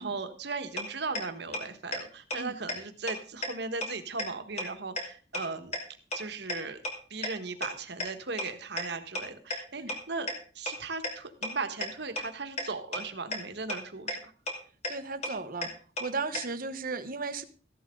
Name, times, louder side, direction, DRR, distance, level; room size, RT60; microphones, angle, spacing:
voice 1, 0.0-5.7 6.1-6.8 7.1-10.3 10.5-14.3, right 4 dB, 70° right, 8 dB, 1.6 m, -37 dB
sound 1, 0.8-0.9 1.1-1.2 1.5-1.6 1.9-2.0 2.3-2.4 2.7-2.8 3.1-3.2 3.4-3.5 3.8-3.9 4.2-4.3 4.6-4.7 5.0-5.1 5.3-5.4 5.7-5.8 6.1-6.2 6.5-6.6 6.8-6.9 7.2-7.3 7.6-7.7 8.0-8.1 8.4-8.5 8.8-8.9 9.1-9.2 9.5-9.6 9.9-10.0 10.3-10.4 10.7-10.8 11.0-11.1 11.4-11.5 11.8-11.9 12.2-12.3 12.6-12.7 12.9-13.0 13.3-13.4 13.7-13.8 14.1-14.2 14.5-14.6 14.8-14.9 15.2-15.3 15.6-15.7 16.0-16.1 16.3-16.4, left 1 dB, 40° left, 3.1 m, -31 dB
voice 2, 14.9-15.7 16.0-17.4, right 4 dB, 55° right, 10 dB, 1.1 m, -35 dB
15.0 x 11.5 x 3.8 m, 0.40 s
head